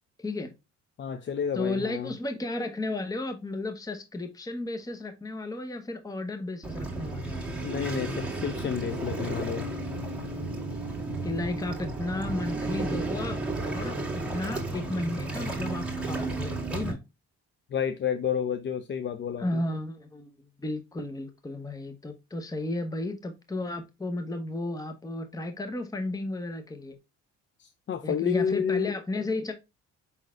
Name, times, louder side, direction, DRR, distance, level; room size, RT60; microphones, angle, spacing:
voice 1, 0.2-0.5 1.5-7.5 11.2-17.0 19.4-27.0 28.0-29.5, left 2 dB, 10° left, 0.8 m, -33 dB
voice 2, 1.0-2.1 7.6-9.7 17.7-19.6 27.6-28.9, left 8 dB, 40° left, 0.5 m, -30 dB
Waves surf, 6.6-16.9, right 2 dB, 5° right, 1.8 m, -33 dB
5.6 x 3.9 x 2.4 m
cardioid pair, 90°, 30 cm